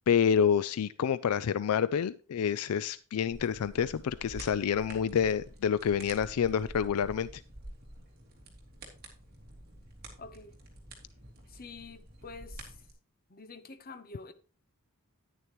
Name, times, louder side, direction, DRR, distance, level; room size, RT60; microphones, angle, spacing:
voice 1, 0.1-7.4, left 7 dB, 75° left, 0.4 m, -28 dB
sound 1, 3.3-12.9, right 1 dB, 45° right, 3.4 m, -49 dB
voice 2, 10.2-10.5 11.5-12.8 13.3-14.3, left 4 dB, 45° left, 1.0 m, -47 dB
10.5 x 9.8 x 3.0 m
head